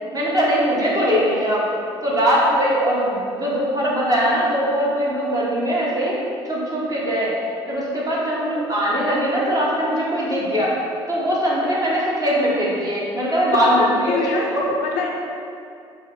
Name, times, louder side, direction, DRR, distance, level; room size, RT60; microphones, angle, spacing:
voice 1, 0.1-1.7 2.0-6.2 6.4-7.4 7.7-10.8 11.1-14.2 14.5-14.6, equal, 25° right, -6 dB, 1.3 m, -21 dB
voice 2, 13.8-15.2, left 4 dB, 60° left, -1 dB, 0.6 m, -26 dB
5.2 x 2.1 x 3.7 m, 2.5 s
hypercardioid pair, 55°, 14 cm